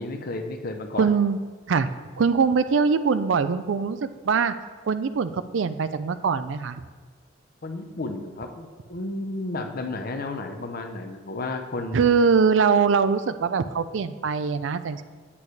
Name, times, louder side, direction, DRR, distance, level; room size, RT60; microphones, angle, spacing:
voice 1, 0.0-1.1 7.6-12.1, left 2 dB, 50° left, 5 dB, 0.7 m, -32 dB
voice 2, 1.0-1.4 1.7-1.9 2.2-4.5 4.9-6.8 11.9-15.0, right 5 dB, 75° right, 12 dB, 0.4 m, -22 dB
8.5 x 8.4 x 3.2 m, 1.4 s
head